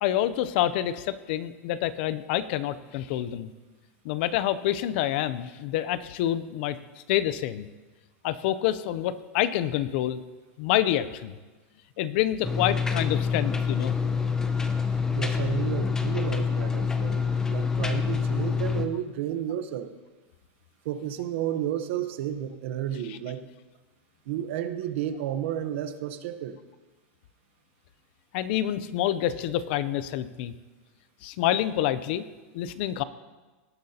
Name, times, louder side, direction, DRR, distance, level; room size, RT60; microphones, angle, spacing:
voice 1, 0.0-3.5 4.0-6.8 7.1-7.7 8.2-10.2 10.6-11.3 12.0-13.9 23.1-23.2 28.3-30.5 31.2-32.2 32.5-33.0, left 12 dB, 50° left, 15 dB, 0.6 m, -27 dB
sound 1, 12.4-18.9, left 5 dB, 10° left, 0.6 m, -26 dB
voice 2, 15.1-19.9 20.8-23.5 24.3-26.6, right 10 dB, 60° right, 10 dB, 0.9 m, -32 dB
18.5 x 10.5 x 2.9 m, 1.2 s
supercardioid pair, 160°, 7 cm